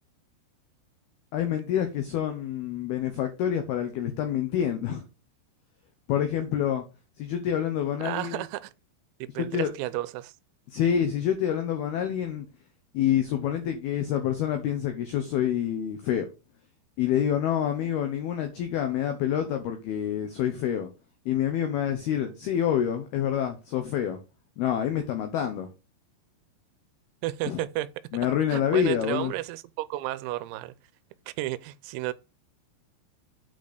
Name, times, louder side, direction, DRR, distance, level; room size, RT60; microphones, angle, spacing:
voice 1, 1.3-5.0 6.1-6.8 7.2-8.4 9.4-9.7 10.7-12.5 12.9-16.3 17.0-20.9 21.3-24.2 24.6-25.7 27.5-27.6 28.1-29.3, left 9 dB, 85° left, 2.2 m, -27 dB
voice 2, 8.0-8.7 9.2-10.4 27.2-27.9 28.5-30.7 31.3-32.1, right 16 dB, 90° right, 3.4 m, -32 dB
9.0 x 4.2 x 6.5 m
omnidirectional pair, 6.0 m